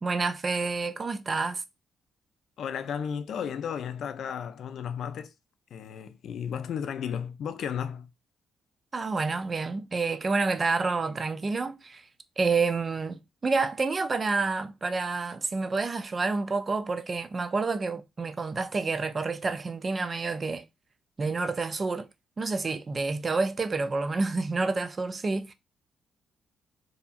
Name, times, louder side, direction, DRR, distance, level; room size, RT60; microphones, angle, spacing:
voice 1, 0.0-1.6 8.9-12.0 12.4-20.7 21.2-22.1 22.4-25.5, right 4 dB, 35° right, 0.4 m, -29 dB
voice 2, 2.6-5.3 5.7-8.1, left 8 dB, 65° left, 0.4 m, -34 dB
2.7 x 2.5 x 2.4 m
cardioid pair, 90°, 0 cm